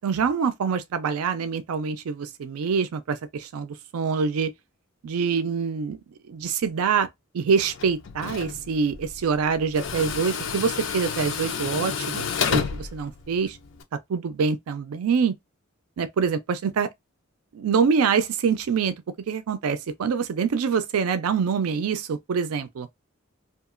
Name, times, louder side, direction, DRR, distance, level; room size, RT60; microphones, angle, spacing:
voice 1, 0.0-4.5 5.0-6.0 6.3-7.1 7.3-13.6 14.1-15.3 16.0-16.9 17.5-18.9 19.3-22.9, right 6 dB, 90° right, 0.4 m, -25 dB
Tools, 7.6-13.8, left 6 dB, 65° left, 0.5 m, -31 dB
2.8 x 2.4 x 2.4 m
head